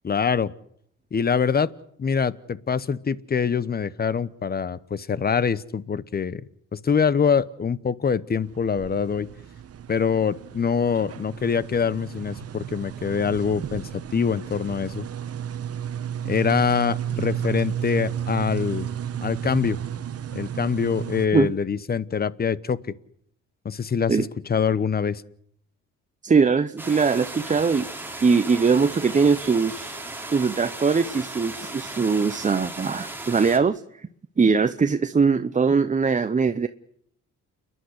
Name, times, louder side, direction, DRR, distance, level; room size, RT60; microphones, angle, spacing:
voice 1, 0.0-0.5 1.1-1.7 2.0-6.4 6.7-9.3 9.9-15.0 16.2-18.9 19.2-19.8 20.3-22.8 23.6-25.2, left 6 dB, 30° left, 19 dB, 1.0 m, -24 dB
sound 1, 8.4-21.3, right 9 dB, 50° right, 1.1 m, -32 dB
voice 2, 26.2-27.9 28.2-30.0 30.3-33.8 34.4-36.7, right 5 dB, 25° right, 10 dB, 0.8 m, -21 dB
sound 2, 26.8-33.6, right 2 dB, 5° right, 3.3 m, -36 dB
29.5 x 11.0 x 9.7 m, 0.69 s
cardioid pair, 90°, 30 cm